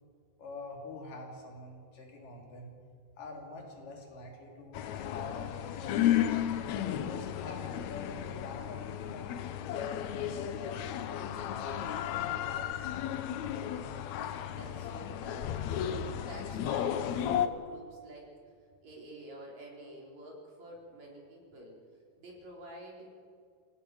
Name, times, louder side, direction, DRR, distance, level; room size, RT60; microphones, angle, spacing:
voice 1, 0.4-2.7 3.2-6.3 6.8-9.4 9.8-11.1 11.5-13.2, left 3 dB, 90° left, 1 dB, 4.6 m, -46 dB
sound 1, 4.7-17.5, left 10 dB, 70° left, 2.0 m, -33 dB
voice 2, 14.2-18.3 18.8-21.8 22.2-23.1, right 1 dB, 60° right, -2 dB, 5.4 m, -49 dB
28.0 x 16.5 x 6.4 m, 2.1 s
omnidirectional pair, 3.7 m